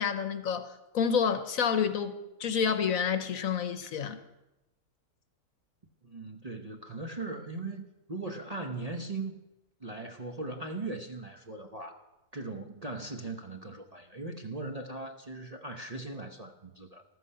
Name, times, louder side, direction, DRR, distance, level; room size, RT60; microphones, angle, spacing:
voice 1, 0.0-4.2, left 7 dB, 60° left, 10 dB, 1.3 m, -29 dB
voice 2, 6.0-9.4 9.8-12.0 12.3-17.0, right 2 dB, 30° right, 3 dB, 0.8 m, -39 dB
14.0 x 13.0 x 5.6 m, 0.97 s
omnidirectional pair, 1.7 m